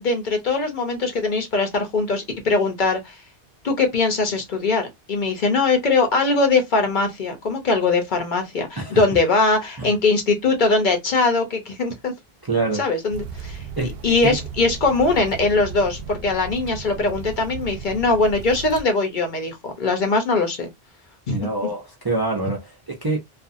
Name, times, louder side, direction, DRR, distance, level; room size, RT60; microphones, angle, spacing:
voice 1, 0.0-3.2 3.6-12.1 12.7-13.6 14.0-20.7 21.3-21.7, left 3 dB, 55° left, 0.8 m, -21 dB
voice 2, 12.5-12.8 13.8-14.0 14.2-14.4 21.3-23.2, right 3 dB, 30° right, 0.5 m, -25 dB
sound 1, 13.1-18.8, right 5 dB, 70° right, 0.8 m, -35 dB
2.5 x 2.3 x 2.6 m
omnidirectional pair, 1.0 m